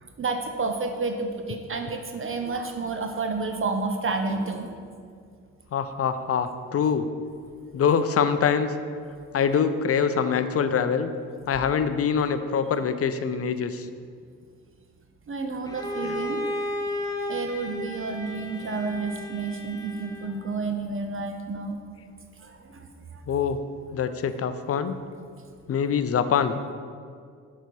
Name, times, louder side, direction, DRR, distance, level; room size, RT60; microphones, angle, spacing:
voice 1, 0.0-4.7 15.3-16.4 17.3-21.8 22.4-23.2, right 3 dB, 35° right, 5 dB, 0.7 m, -30 dB
voice 2, 5.7-7.1 7.7-8.7 9.3-11.1 11.5-13.9 16.0-16.2 23.3-23.6 23.9-25.0 25.7-26.6, left 7 dB, 40° left, 11 dB, 0.5 m, -24 dB
Bowed string instrument, 15.6-20.5, left 1 dB, 10° left, 1.1 m, -33 dB
6.5 x 4.1 x 4.7 m, 2.1 s
hypercardioid pair, 45°, 38 cm